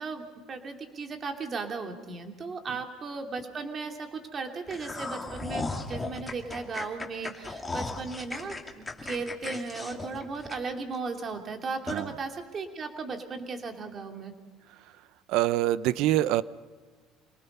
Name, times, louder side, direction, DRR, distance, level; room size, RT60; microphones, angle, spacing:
voice 1, 0.0-14.3, right 4 dB, 35° right, 4 dB, 2.9 m, -36 dB
sound 1, 4.7-11.0 11.3-11.4 11.9-12.0, left 3 dB, 10° left, 2.7 m, -36 dB
voice 2, 15.3-16.4, right 14 dB, 70° right, 17 dB, 0.7 m, -25 dB
27.0 x 19.0 x 5.6 m, 1.4 s
cardioid pair, 115°, 0 cm